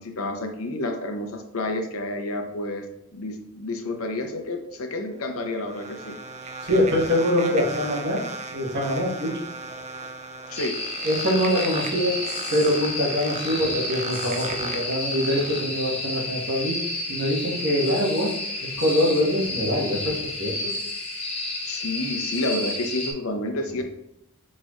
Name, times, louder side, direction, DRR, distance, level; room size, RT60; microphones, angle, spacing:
voice 1, 0.0-2.9 3.1-6.2 10.5-10.8 21.6-23.8, left 2 dB, 90° left, 5 dB, 0.7 m, -30 dB
sound 1, 5.1-15.6, right 4 dB, 35° right, 0.4 m, -37 dB
voice 2, 6.6-9.4 11.0-12.2 12.5-16.8 17.1-18.3 18.6-20.7 23.8-23.9, equal, 60° right, -3 dB, 1.3 m, -24 dB
sound 2, 10.5-23.1, left 2 dB, 30° left, 0.9 m, -31 dB
4.9 x 4.3 x 2.4 m, 0.81 s
head